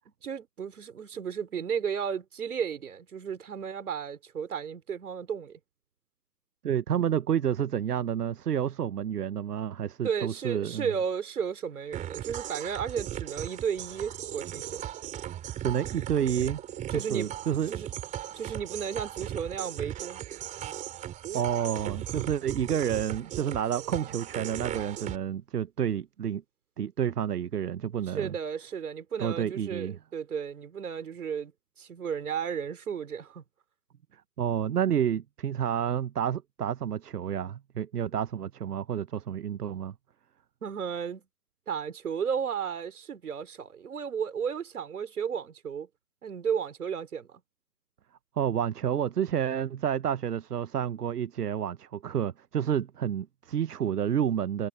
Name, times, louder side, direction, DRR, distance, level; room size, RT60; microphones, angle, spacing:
voice 1, 0.2-5.6 10.0-14.8 16.9-17.3 17.7-17.9 18.3-20.2 28.1-31.5 31.8-33.4 40.6-41.2 41.7-45.9 46.2-47.4, right 7 dB, 70° right, 4.5 m, -33 dB
voice 2, 6.6-10.9 15.6-16.6 16.9-17.7 21.3-26.4 26.8-28.4 29.2-30.0 34.4-39.9 48.4-54.7, right 9 dB, 85° right, 0.9 m, -29 dB
sound 1, 11.9-25.2, right 11 dB, 15° right, 3.4 m, -37 dB
hypercardioid pair, 145°, 46 cm